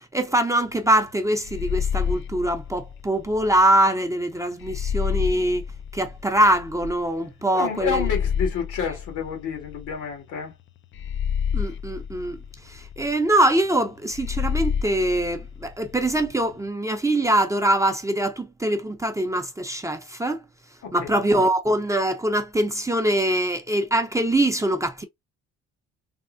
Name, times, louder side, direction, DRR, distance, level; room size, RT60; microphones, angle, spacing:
voice 1, 0.0-5.6 5.9-8.1 11.5-12.4 12.6-20.4 20.9-25.0, right 1 dB, 10° right, 0.6 m, -23 dB
sound 1, 1.4-3.6 4.6-6.8 7.8-10.1 10.9-13.1 14.1-16.3, left 8 dB, 40° left, 0.4 m, -29 dB
voice 2, 7.5-10.5 20.8-21.1, left 6 dB, 85° left, 1.8 m, -29 dB
3.4 x 2.0 x 2.5 m
cardioid pair, 90°, 30 cm